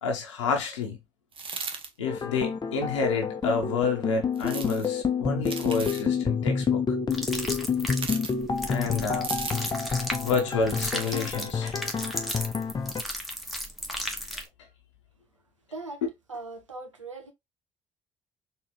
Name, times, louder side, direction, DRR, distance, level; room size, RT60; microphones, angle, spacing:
voice 1, 0.0-1.0 2.0-7.0 8.7-9.3 10.2-11.8 12.0-12.1, left 5 dB, 80° left, 0.9 m, -29 dB
sound 1, 1.3-1.9 4.4-4.9 5.4-6.1 7.9-8.3 9.2-9.9 10.9-11.3, right 4 dB, 35° right, 1.0 m, -36 dB
sound 2, 2.1-13.0, left 5 dB, 25° left, 0.8 m, -28 dB
sound 3, 7.1-14.5, equal, ahead, 1.4 m, -35 dB
voice 2, 15.7-16.0 16.3-17.3, right 3 dB, 90° right, 0.6 m, -39 dB
4.4 x 3.1 x 3.0 m
figure-of-eight pair, 50°, 15 cm